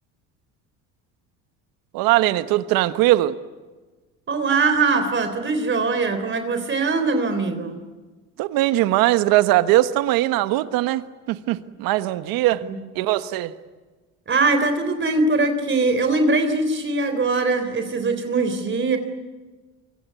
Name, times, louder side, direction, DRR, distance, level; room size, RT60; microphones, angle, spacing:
voice 1, 1.9-3.4 8.4-12.6 12.9-13.5, right 16 dB, 75° right, 1.4 m, -20 dB
voice 2, 4.3-7.8 12.6-12.8 14.3-19.0, right 3 dB, 35° right, 3.6 m, -21 dB
26.5 x 24.0 x 8.3 m
supercardioid pair, 90°, 35 cm